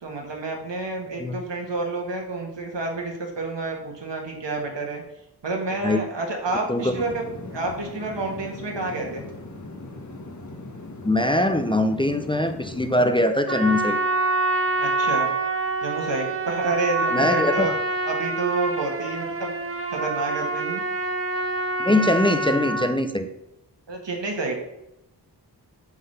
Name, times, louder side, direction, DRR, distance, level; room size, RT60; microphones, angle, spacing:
voice 1, 0.0-5.0 5.4-7.2 7.5-9.2 14.8-15.3 15.8-17.7 18.1-19.5 19.9-20.8 23.9-24.6, right 3 dB, 85° right, 1 dB, 1.8 m, -29 dB
sound 1, 6.8-13.2, left 2 dB, 45° left, 1.3 m, -39 dB
voice 2, 11.0-14.0 17.1-17.7 21.8-23.3, left 1 dB, 10° left, 7 dB, 0.5 m, -22 dB
Trumpet, 13.4-22.9, right 3 dB, 35° right, 1.2 m, -26 dB
8.1 x 3.9 x 6.6 m, 0.86 s
wide cardioid pair, 90°, 42 cm